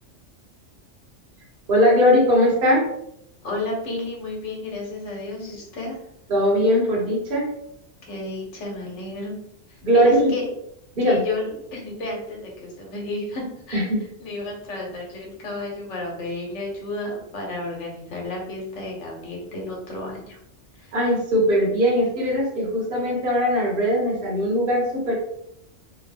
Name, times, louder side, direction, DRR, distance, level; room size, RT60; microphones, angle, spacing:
voice 1, 1.7-2.8 6.3-7.5 9.8-10.3 11.0-11.2 13.7-14.0 20.9-25.1, equal, 45° right, -3 dB, 1.1 m, -20 dB
voice 2, 3.4-6.0 8.1-9.3 9.7-10.5 11.0-13.9 14.2-20.4 20.8-20.9, left 2 dB, 70° left, -1 dB, 1.1 m, -32 dB
2.8 x 2.0 x 3.3 m, 0.76 s
omnidirectional pair, 1.3 m